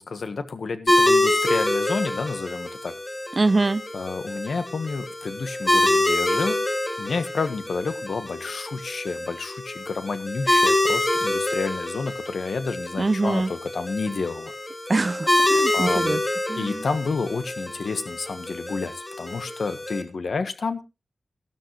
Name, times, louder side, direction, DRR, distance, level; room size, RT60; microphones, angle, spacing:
voice 1, 0.0-2.9 3.9-6.6 7.0-14.5 15.7-16.2 16.6-20.8, left 4 dB, 85° left, 10 dB, 1.4 m, -30 dB
sound 1, 0.9-20.0, left 1 dB, 20° left, 2.8 m, -26 dB
voice 2, 3.4-3.8 13.0-13.5 14.9-16.2 16.5-16.8, right 3 dB, 40° right, 18 dB, 0.5 m, -24 dB
13.0 x 12.5 x 3.2 m, 0.27 s
wide cardioid pair, 100°, 0 cm